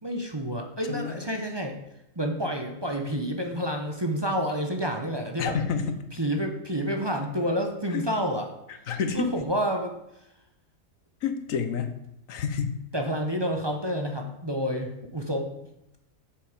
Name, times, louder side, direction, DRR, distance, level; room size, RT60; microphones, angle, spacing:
voice 1, 0.0-1.7 2.2-5.5 6.2-8.5 9.1-9.9 12.9-15.5, equal, 20° right, 3 dB, 0.8 m, -29 dB
voice 2, 0.9-1.3 5.4-6.0 7.9-8.1 8.7-9.4 11.2-11.9 12.3-12.8, left 6 dB, 80° left, 9 dB, 1.3 m, -29 dB
7.5 x 7.3 x 5.1 m, 0.86 s
omnidirectional pair, 1.4 m